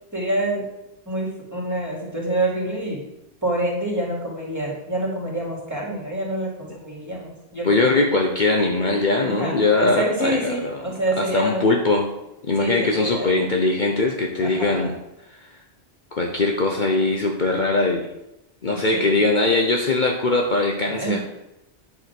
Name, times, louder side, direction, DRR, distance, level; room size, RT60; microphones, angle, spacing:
voice 1, 0.1-0.6 1.1-3.0 3.4-7.9 9.2-11.6 12.6-13.3 14.4-14.9 18.7-19.2 20.8-21.2, right 1 dB, 15° right, -4 dB, 3.0 m, -27 dB
voice 2, 7.6-12.1 12.4-14.9 15.3-15.5 16.1-18.1 18.6-21.2, left 2 dB, 50° left, 1 dB, 1.0 m, -21 dB
9.8 x 4.9 x 6.1 m, 0.91 s
omnidirectional pair, 1.1 m